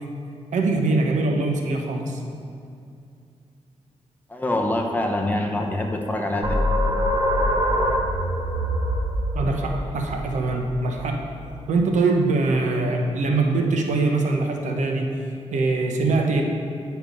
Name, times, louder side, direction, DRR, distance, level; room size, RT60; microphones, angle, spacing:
voice 1, 0.5-2.2 9.3-11.2 11.7-15.2 15.5-16.4, right 3 dB, 85° right, 2 dB, 0.9 m, -22 dB
voice 2, 4.3-6.5, left 1 dB, 15° left, 1 dB, 0.9 m, -25 dB
sound 1, 6.4-11.7, equal, 35° right, 1.0 m, -24 dB
9.5 x 4.6 x 5.2 m, 2.4 s
wide cardioid pair, 105°, 12 cm